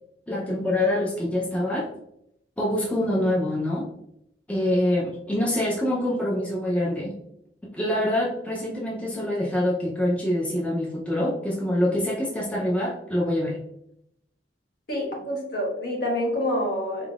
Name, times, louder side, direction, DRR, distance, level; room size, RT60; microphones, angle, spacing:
voice 1, 0.3-1.9 2.6-3.9 4.5-7.2 7.7-13.6, left 1 dB, 5° left, -5 dB, 0.5 m, -25 dB
voice 2, 14.9-17.1, left 1 dB, 55° left, -2 dB, 1.2 m, -27 dB
3.7 x 3.6 x 2.4 m, 0.77 s
head